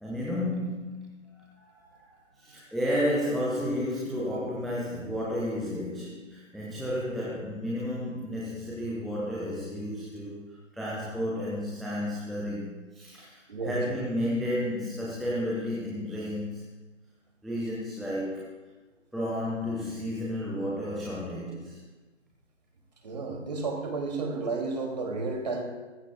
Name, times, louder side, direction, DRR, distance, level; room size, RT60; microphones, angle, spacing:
voice 1, 0.0-2.0 2.3-16.6 17.4-18.5 19.1-21.8, left 1 dB, ahead, -7 dB, 0.5 m, -32 dB
voice 2, 23.0-25.6, right 3 dB, 35° right, 2 dB, 2.4 m, -32 dB
23.5 x 15.0 x 2.2 m, 1.2 s
figure-of-eight pair, 160°, 38 cm